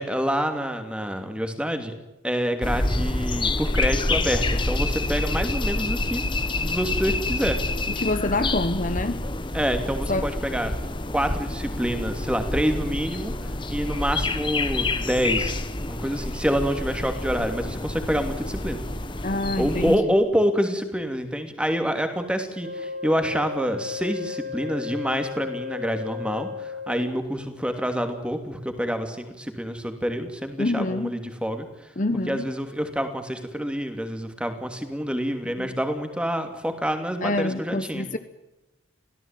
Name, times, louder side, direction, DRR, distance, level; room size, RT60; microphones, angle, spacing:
voice 1, 0.0-1.9 2.2-6.2 6.6-7.6 9.5-10.7 11.1-15.6 15.9-18.8 19.6-31.7 32.3-38.1, equal, 5° right, 7 dB, 2.9 m, -27 dB
sound 1, 2.6-20.0, left 2 dB, 25° left, 1.4 m, -28 dB
voice 2, 7.9-9.2 10.1-10.3 19.2-20.1 30.6-31.1 32.0-32.5 35.6-35.7 37.2-38.2, left 2 dB, 40° left, 10 dB, 1.0 m, -26 dB
Wind instrument woodwind instrument, 22.6-27.2, left 5 dB, 65° right, 6.0 m, -34 dB
26.0 x 17.0 x 9.3 m, 1.0 s
head